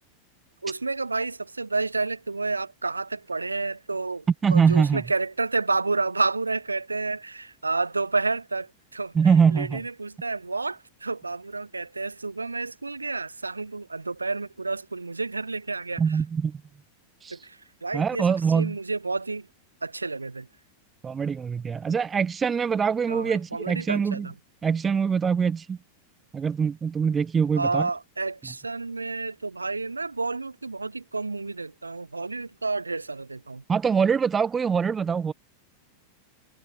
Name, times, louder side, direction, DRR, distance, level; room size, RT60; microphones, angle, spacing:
voice 1, 0.6-4.2 4.5-9.1 9.5-16.0 17.3-18.3 18.5-19.5 19.8-20.5 23.1-24.3 27.6-33.6, right 3 dB, 80° right, 0.4 m, -30 dB
voice 2, 4.4-5.0 9.1-9.8 16.0-16.6 17.2-17.4 17.9-18.8 21.0-24.3 24.6-25.8 26.3-27.9 33.7-35.3, right 6 dB, 20° right, 1.1 m, -23 dB
figure-of-eight pair, 90°, 0 cm